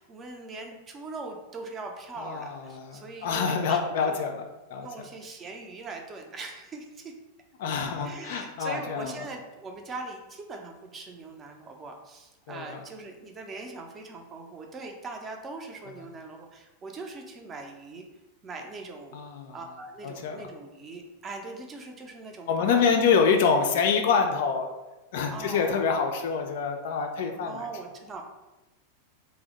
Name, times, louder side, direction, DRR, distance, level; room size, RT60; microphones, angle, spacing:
voice 1, 0.0-4.2 4.8-7.1 8.0-18.1 18.4-19.2 19.5-22.9 25.3-26.3 27.3-28.3, right 3 dB, 25° right, 3 dB, 0.5 m, -41 dB
voice 2, 2.2-4.4 4.7-4.9 7.6-9.1 12.5-12.8 19.1-19.6 20.0-20.5 22.5-24.7 25.1-27.6, left 6 dB, 55° left, 4 dB, 0.3 m, -26 dB
2.6 x 2.0 x 3.8 m, 1.0 s
figure-of-eight pair, 90°, 0 cm